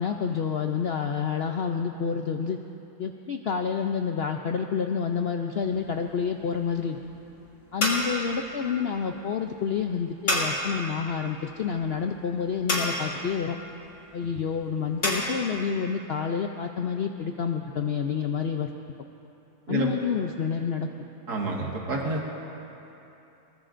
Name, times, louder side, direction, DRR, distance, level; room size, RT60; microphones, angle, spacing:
voice 1, 0.0-2.6 3.0-7.0 7.7-13.6 14.1-18.7 19.7-20.9, left 6 dB, 85° left, 4 dB, 0.5 m, -28 dB
sound 1, 5.6-15.2, left 1 dB, 45° left, 2.9 m, -32 dB
voice 2, 21.3-22.3, right 2 dB, 70° right, -1 dB, 2.3 m, -29 dB
23.0 x 20.0 x 2.6 m, 2.9 s
omnidirectional pair, 1.7 m